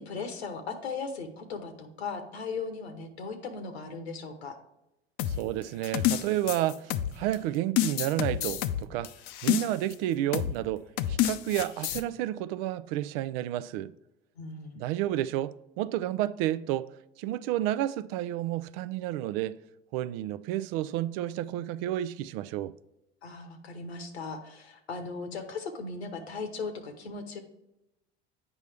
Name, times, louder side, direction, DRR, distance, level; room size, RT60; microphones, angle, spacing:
voice 1, 0.0-4.6 14.3-14.9 23.2-27.4, left 4 dB, 90° left, 1.2 m, -38 dB
sound 1, 5.2-7.4 7.8-9.9 10.3-10.6 11.0-12.0, left 12 dB, 60° left, 0.6 m, -29 dB
voice 2, 5.3-9.1 9.4-13.9 14.8-16.9 17.2-19.6 19.9-22.7, right 13 dB, 65° right, 0.5 m, -31 dB
8.1 x 5.3 x 3.4 m
hypercardioid pair, 80°, 31 cm